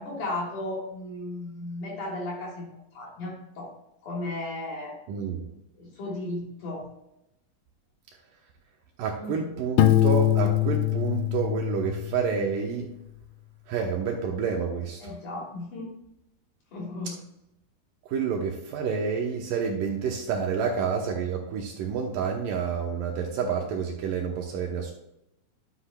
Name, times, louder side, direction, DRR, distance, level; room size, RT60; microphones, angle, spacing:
voice 1, 0.0-2.7 2.9-3.7 4.0-5.0 5.8-6.9 9.2-9.5 15.0-15.9 16.7-17.2, left 2 dB, 55° left, -4 dB, 4.3 m, -35 dB
voice 2, 5.1-5.4 9.0-12.8 13.7-15.1 18.1-24.9, right 6 dB, 70° right, 2 dB, 2.3 m, -29 dB
Piano, 9.8-12.5, left 14 dB, 85° left, 2.0 m, -23 dB
11.5 x 7.7 x 2.3 m, 0.85 s
omnidirectional pair, 4.4 m